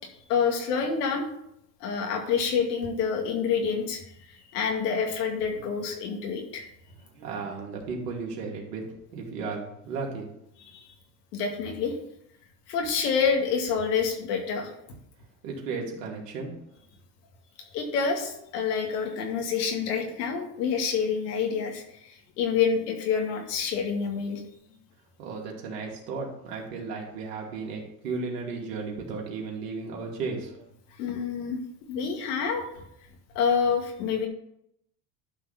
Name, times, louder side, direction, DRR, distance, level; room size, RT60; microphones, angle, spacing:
voice 1, 0.3-1.3 1.8-4.0 4.5-6.6 10.7-10.9 11.3-12.0 12.7-14.7 17.7-24.4 31.0-31.6 31.9-32.6 33.4-34.3, left 6 dB, 85° left, 3 dB, 2.1 m, -27 dB
voice 2, 6.9-8.8 9.1-10.3 15.4-16.5 25.2-30.6, right 4 dB, 90° right, -1 dB, 2.6 m, -34 dB
11.5 x 3.9 x 5.7 m, 0.76 s
supercardioid pair, 100°, 46 cm